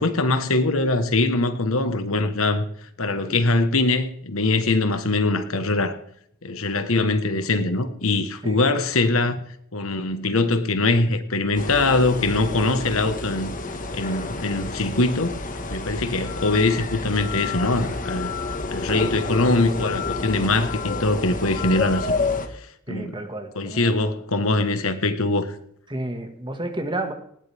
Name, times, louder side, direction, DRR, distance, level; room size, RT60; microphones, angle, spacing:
voice 1, 0.0-2.6 3.0-6.0 6.4-9.4 9.7-13.6 13.9-15.4 15.7-18.3 18.7-23.2 23.5-25.5, left 2 dB, 80° left, 1.4 m, -22 dB
sound 1, 11.5-22.5, left 3 dB, 40° left, 1.6 m, -29 dB
voice 2, 22.9-23.9 25.9-27.1, right 1 dB, 25° right, 1.8 m, -31 dB
19.5 x 17.0 x 3.6 m
head